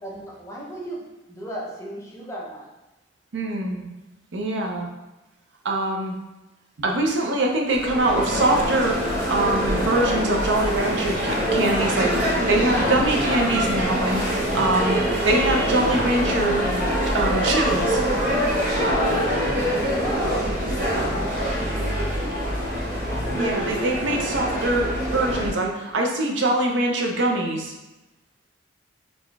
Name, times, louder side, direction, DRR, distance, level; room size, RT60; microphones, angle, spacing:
voice 1, 0.0-1.0 1.3-2.7 19.9-20.6 20.9-21.3 22.0-22.8, equal, 15° left, -3 dB, 0.6 m, -35 dB
voice 2, 3.3-3.9 4.3-4.9 5.6-6.1 6.8-9.0 9.3-16.7 17.1-18.0 23.3-27.7, right 2 dB, 65° right, 1 dB, 0.5 m, -23 dB
sound 1, 7.7-25.5, equal, 45° right, 1.1 m, -24 dB
3.7 x 3.6 x 2.4 m, 1.0 s
head